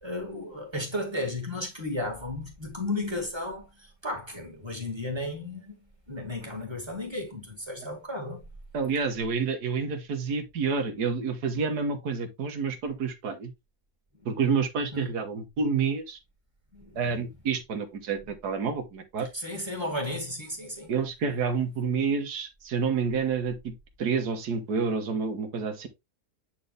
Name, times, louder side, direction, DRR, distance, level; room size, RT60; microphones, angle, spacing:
voice 1, 0.0-5.8 6.1-8.4 16.7-17.0 19.3-20.9, left 1 dB, 15° right, 2.4 m, -34 dB
voice 2, 8.7-13.5 14.3-16.2 17.0-19.3 20.9-23.7 24.0-25.9, right 5 dB, 70° right, 1.8 m, -29 dB
9.2 x 4.3 x 3.3 m
omnidirectional pair, 1.8 m